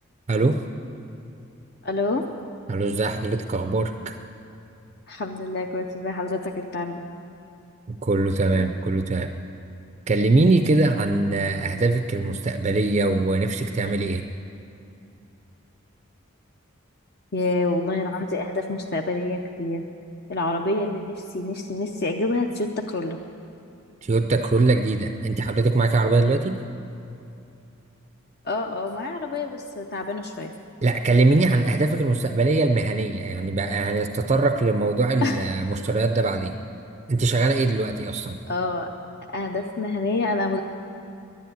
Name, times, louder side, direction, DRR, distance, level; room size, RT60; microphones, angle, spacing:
voice 1, 0.3-0.6 2.7-4.2 7.9-9.3 10.1-14.3 24.0-26.6 30.8-36.6 37.1-38.4, right 3 dB, 30° right, 7 dB, 0.4 m, -22 dB
voice 2, 1.8-2.3 5.1-7.0 8.5-8.7 17.3-19.8 20.3-23.2 28.4-30.5 35.2-35.4 38.5-38.9 39.3-40.6, left 2 dB, 50° left, 2 dB, 0.6 m, -27 dB
10.5 x 10.5 x 9.2 m, 2.6 s
head